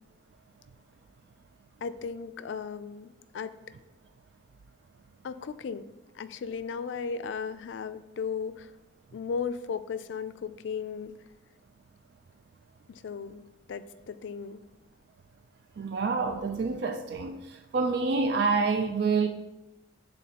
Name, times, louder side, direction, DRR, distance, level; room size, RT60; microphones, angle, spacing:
voice 1, 1.8-3.6 5.2-5.9 6.1-8.7 9.1-11.1 12.9-14.6, left 6 dB, 75° left, 0.3 m, -36 dB
voice 2, 15.8-19.3, right 4 dB, 60° right, 0.3 m, -27 dB
9.1 x 3.8 x 2.8 m
head